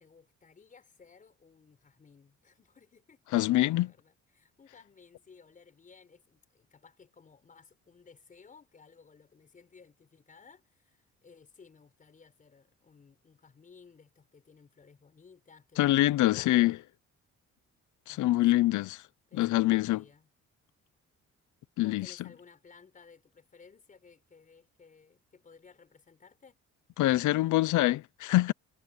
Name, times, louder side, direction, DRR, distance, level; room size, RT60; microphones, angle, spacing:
voice 1, 0.0-3.2 3.7-16.8 18.1-18.6 19.3-20.3 21.8-26.6, left 5 dB, 25° left, 5.2 m, -58 dB
voice 2, 3.3-3.9 15.8-16.8 18.1-19.0 19.3-20.0 21.8-22.1 27.0-28.5, left 16 dB, 90° left, 0.7 m, -25 dB
cardioid pair, 170°, 29 cm